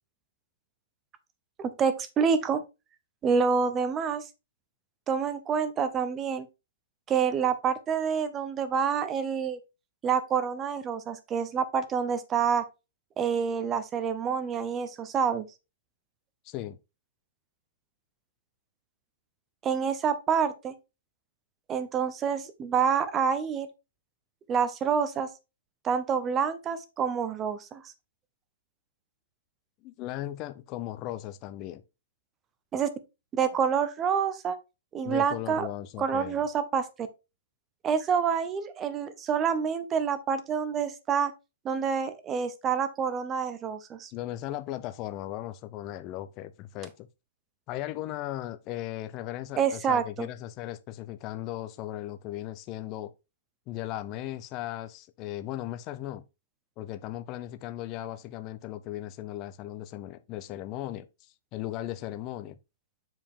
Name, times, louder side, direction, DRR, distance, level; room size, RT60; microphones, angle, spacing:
voice 1, 1.6-2.6 3.2-4.3 5.1-6.5 7.1-9.6 10.0-12.6 13.2-15.4 19.6-20.7 21.7-23.7 24.5-25.3 25.8-27.8 32.7-32.9 33.3-34.6 34.9-35.7 36.0-37.1 37.8-41.3 41.6-44.1 49.6-50.3, right 6 dB, 15° right, 0.6 m, -27 dB
voice 2, 16.4-16.8 29.8-31.8 35.0-36.4 44.1-47.1 47.7-53.1 53.7-56.2 56.8-62.6, left 14 dB, 20° left, 0.4 m, -37 dB
7.4 x 4.8 x 3.6 m
hypercardioid pair, 175°, 0 cm